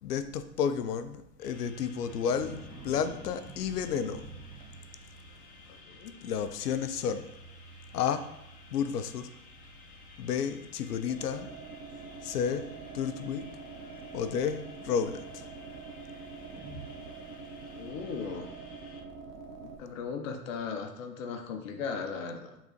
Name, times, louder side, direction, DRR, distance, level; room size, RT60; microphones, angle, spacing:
voice 1, 0.0-4.3 6.2-7.3 7.9-8.3 8.7-9.3 10.2-11.5 12.2-12.7 12.9-13.5 14.1-15.4, left 7 dB, 75° left, 10 dB, 0.7 m, -31 dB
sound 1, 1.4-19.0, left 1 dB, 20° left, 0.6 m, -53 dB
sound 2, 2.0-5.3 5.9-6.2 6.5-6.9 7.2-7.3 8.0-8.1 8.7-8.8 9.3-9.7 10.5-10.6 13.5-14.5 16.5-17.6 18.1-18.8, right 2 dB, 10° right, 0.8 m, -49 dB
voice 2, 5.7-6.2 17.8-18.5 19.8-22.6, left 5 dB, 55° left, 5 dB, 1.0 m, -37 dB
sound 3, 11.1-19.7, right 5 dB, 35° right, 0.8 m, -45 dB
8.1 x 4.0 x 3.1 m, 0.84 s
hypercardioid pair, 110°, 48 cm